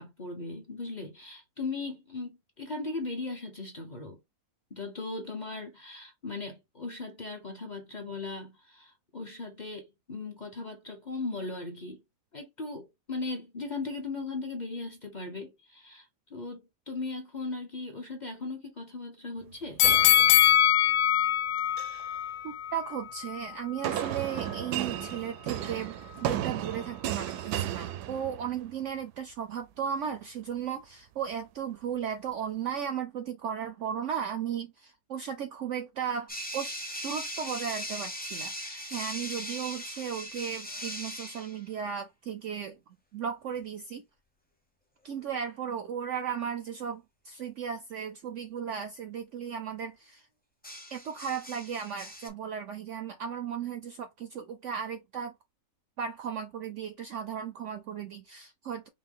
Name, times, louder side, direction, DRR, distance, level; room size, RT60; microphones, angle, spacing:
voice 1, 0.0-4.2 4.7-12.0 12.3-19.8, left 3 dB, 40° left, 0.7 m, -38 dB
sound 1, 19.8-22.9 23.3-23.4, left 12 dB, 70° left, 0.8 m, -22 dB
sound 2, 19.8-20.9 21.6-22.1 23.8-28.7, right 11 dB, 85° right, 1.1 m, -34 dB
voice 2, 22.4-25.9 26.2-36.7 37.0-42.8 43.1-44.0 45.0-50.3 50.9-55.3 56.0-58.9, right 8 dB, 70° right, 0.7 m, -35 dB
sound 3, 36.3-41.6 45.1-45.4 50.6-52.3, equal, 10° left, 0.5 m, -39 dB
5.2 x 2.1 x 3.6 m
omnidirectional pair, 1.7 m